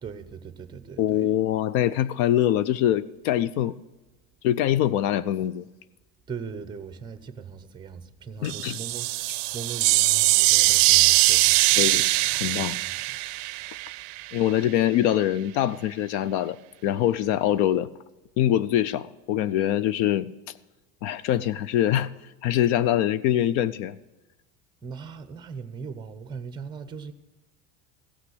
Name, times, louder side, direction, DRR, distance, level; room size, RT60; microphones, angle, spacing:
voice 1, 0.0-1.2 6.3-11.8 12.2-13.0 24.8-27.1, right 6 dB, 10° right, 0.7 m, -39 dB
voice 2, 1.0-3.8 4.4-5.7 8.4-8.8 9.3-9.4 10.7-10.8 11.8-12.7 14.3-16.6 16.8-17.9 18.4-20.3 21.0-22.1 22.4-23.9, left 12 dB, 65° left, 0.5 m, -24 dB
sound 1, 8.4-14.3, right 21 dB, 55° right, 0.5 m, -22 dB
15.5 x 6.0 x 7.8 m
supercardioid pair, 140°, 38 cm